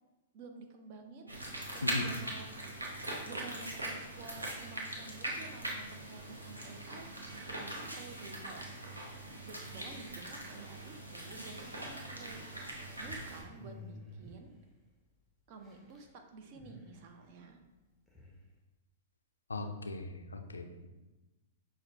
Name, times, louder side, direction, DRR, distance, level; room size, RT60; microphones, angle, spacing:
voice 1, 0.3-2.5 3.2-12.4 12.7-14.5 15.5-17.6, right 4 dB, 45° right, 5 dB, 0.5 m, -51 dB
sound 1, 1.3-13.4, right 1 dB, 90° right, 0.7 m, -41 dB
sound 2, 11.1-15.2 15.5-16.1 16.4-18.5, left 1 dB, ahead, 0.6 m, -54 dB
voice 2, 19.5-20.9, left 2 dB, 80° left, 6 dB, 0.3 m, -38 dB
5.8 x 2.1 x 2.5 m, 1.1 s
figure-of-eight pair, 105°, 0 cm